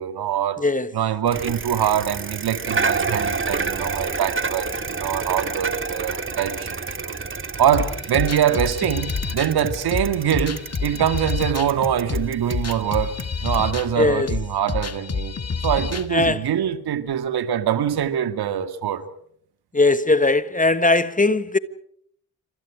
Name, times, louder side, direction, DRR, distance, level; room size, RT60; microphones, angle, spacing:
voice 1, 0.0-0.6 0.9-7.2 7.6-15.4 15.6-19.0, right 9 dB, 60° right, 2.0 m, -24 dB
voice 2, 0.6-0.9 14.0-14.3 16.1-16.4 19.7-21.6, left 2 dB, 20° left, 1.4 m, -19 dB
Bicycle, 1.3-14.4, right 4 dB, 30° right, 2.0 m, -30 dB
sound 1, 7.7-16.3, left 5 dB, 35° left, 2.3 m, -28 dB
28.5 x 26.5 x 5.0 m
hypercardioid pair, 40°, 42 cm